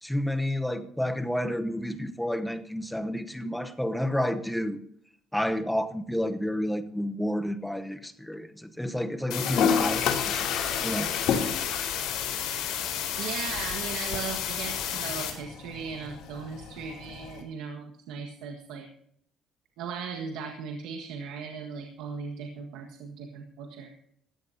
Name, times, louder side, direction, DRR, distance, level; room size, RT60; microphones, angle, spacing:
voice 1, 0.0-4.8 5.3-10.5 10.8-11.1, equal, 5° left, 8 dB, 0.9 m, -30 dB
sound 1, 9.3-15.3, left 9 dB, 90° left, 4.3 m, -32 dB
Toilet flush, 9.4-17.4, left 7 dB, 65° left, 2.9 m, -32 dB
voice 2, 13.2-18.9 19.8-23.9, right 6 dB, 85° right, 3 dB, 1.6 m, -38 dB
19.0 x 15.5 x 2.8 m, 0.68 s
cardioid pair, 150°, 0 cm